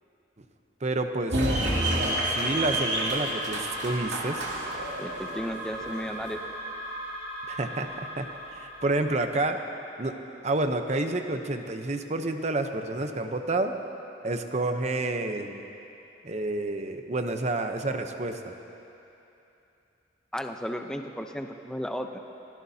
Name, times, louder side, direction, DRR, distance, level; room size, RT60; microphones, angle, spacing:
voice 1, 0.8-4.4 7.5-7.9 8.2-8.3 8.5-9.6 10.0-10.1 10.4-13.8 14.2-15.6 16.2-18.5, right 2 dB, 40° right, 6 dB, 0.8 m, -29 dB
sound 1, 1.3-6.4, right 1 dB, 75° right, 2.7 m, -29 dB
sound 2, 1.7-9.4, right 1 dB, 20° right, 2.4 m, -38 dB
voice 2, 5.0-6.4 20.3-22.2, equal, 5° left, 5 dB, 0.7 m, -34 dB
25.0 x 17.0 x 2.8 m, 2.9 s
head